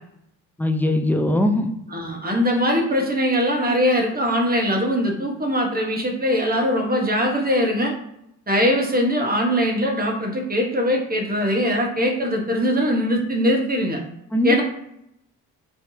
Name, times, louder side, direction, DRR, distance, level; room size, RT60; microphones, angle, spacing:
voice 1, 0.6-1.7 14.3-14.6, left 1 dB, 5° left, 5 dB, 0.4 m, -20 dB
voice 2, 1.9-7.9 8.5-14.0 14.4-14.6, equal, 25° right, 0 dB, 1.0 m, -21 dB
3.3 x 2.6 x 2.7 m, 0.78 s
supercardioid pair, 60°, 39 cm